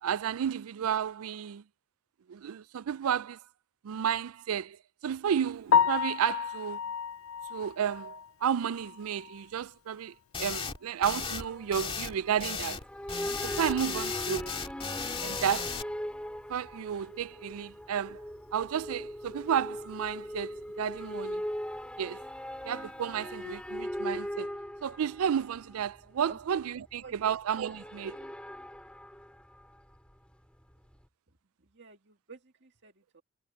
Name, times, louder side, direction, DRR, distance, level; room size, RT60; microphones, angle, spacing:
voice 1, 0.0-1.6 2.3-3.4 3.8-4.8 5.0-6.8 7.5-12.8 13.4-14.5 15.2-15.8 16.5-18.2 18.5-21.4 22.0-22.2 22.6-24.5 24.8-28.2, right 8 dB, 85° right, 0.4 m, -32 dB
Piano, 5.7-9.7 10.0-10.2 10.6-10.7 11.1-11.2 14.3-14.4 22.9-23.1, left 7 dB, 70° left, 0.4 m, -31 dB
sound 1, 10.3-10.8 11.0-11.5 11.7-12.8 13.1-15.8, left 5 dB, 25° left, 2.2 m, -35 dB
sound 2, 11.4-30.3 30.6-31.0, equal, 5° left, 3.4 m, -40 dB
voice 2, 26.3-26.6 27.0-27.4 31.6-33.2, right 4 dB, 55° right, 2.2 m, -51 dB
head